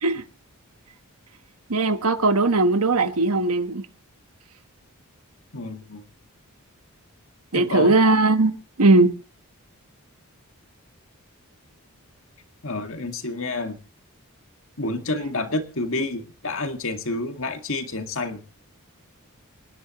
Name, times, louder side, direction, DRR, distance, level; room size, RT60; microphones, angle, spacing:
voice 1, 1.7-3.8 7.5-8.5 8.8-9.1, right 2 dB, 80° right, 1.4 m, -19 dB
voice 2, 5.5-6.0 7.5-8.0 12.6-13.8 14.8-18.4, left 2 dB, 65° left, 2.1 m, -29 dB
26.5 x 11.0 x 3.1 m
head